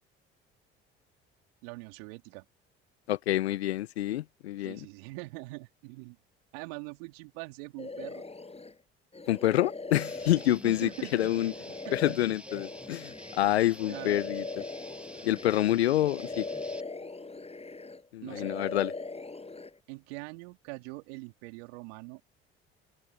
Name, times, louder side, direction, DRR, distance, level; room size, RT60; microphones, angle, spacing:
voice 1, 1.6-2.5 4.6-6.2 6.5-8.2 10.3-12.4 13.9-14.2 18.2-18.9 19.9-22.2, right 28 dB, 75° right, 3.7 m, -43 dB
voice 2, 3.1-4.8 9.3-11.5 11.9-14.4 15.2-16.4 18.1-18.9, left 14 dB, 85° left, 0.9 m, -27 dB
sound 1, 7.8-8.7 9.1-15.8 16.0-18.0 18.3-19.7, left 3 dB, 20° left, 7.6 m, -40 dB
Guitar, 9.9-16.8, right 1 dB, 5° right, 2.8 m, -48 dB
open air
hypercardioid pair, 60°, 31 cm